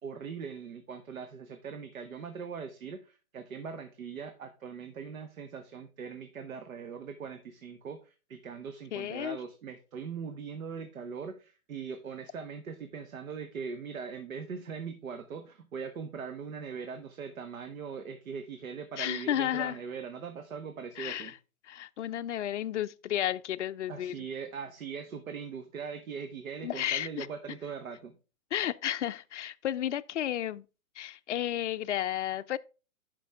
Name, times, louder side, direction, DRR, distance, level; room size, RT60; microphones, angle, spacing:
voice 1, 0.0-21.3 23.9-28.1, right 6 dB, 70° right, 1.1 m, -41 dB
voice 2, 8.9-9.4 19.0-19.8 21.0-21.4 21.7-24.3 26.6-27.3 28.5-30.7 31.0-32.6, left 11 dB, 55° left, 0.5 m, -32 dB
11.0 x 5.2 x 3.4 m
hypercardioid pair, 165°, 42 cm